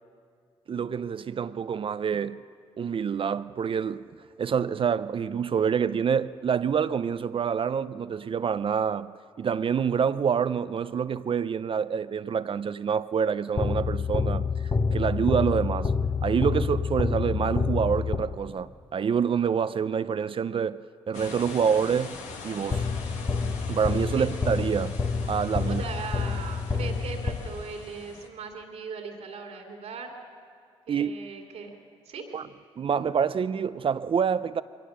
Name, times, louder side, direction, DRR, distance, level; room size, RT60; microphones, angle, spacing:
voice 1, 0.7-2.4 2.8-4.1 4.4-15.9 16.2-22.2 22.4-22.9 23.7-25.0 25.3-25.8 30.9-31.1 32.3-32.4 32.8-34.6, right 7 dB, 50° right, 0.5 m, -27 dB
sound 1, 13.6-18.7 22.7-27.9, left 5 dB, 35° left, 1.0 m, -28 dB
sound 2, 21.1-28.3, left 4 dB, 90° left, 1.6 m, -42 dB
voice 2, 25.7-30.1 30.9-31.7 32.0-32.2, right 5 dB, 80° right, 2.6 m, -39 dB
22.5 x 18.0 x 6.5 m
supercardioid pair, 60°, 12 cm